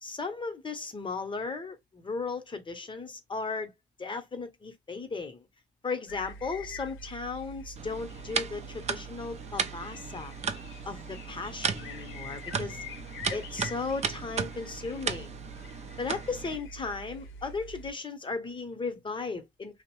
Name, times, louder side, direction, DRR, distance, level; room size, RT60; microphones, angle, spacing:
voice 1, 0.0-3.7 4.0-5.4 5.8-10.3 10.9-12.8 13.3-15.3 16.0-19.8, left 4 dB, 25° left, 0.8 m, -36 dB
sound 1, 6.1-17.9, equal, 85° left, 0.6 m, -44 dB
sound 2, 7.8-16.6, right 6 dB, 35° right, 0.4 m, -36 dB
2.6 x 2.0 x 2.9 m
cardioid pair, 90°, 20 cm